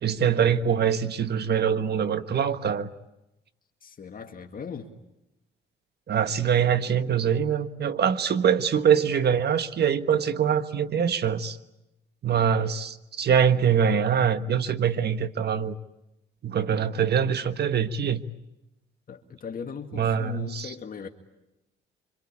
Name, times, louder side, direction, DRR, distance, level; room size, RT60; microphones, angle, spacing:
voice 1, 0.0-2.9 6.1-11.6 12.2-15.8 16.4-18.2 19.9-20.7, right 8 dB, 55° right, 11 dB, 1.4 m, -24 dB
voice 2, 3.8-4.9 19.1-21.1, left 6 dB, 45° left, 4 dB, 2.1 m, -38 dB
27.0 x 25.5 x 8.6 m, 0.92 s
cardioid pair, 90°, 20 cm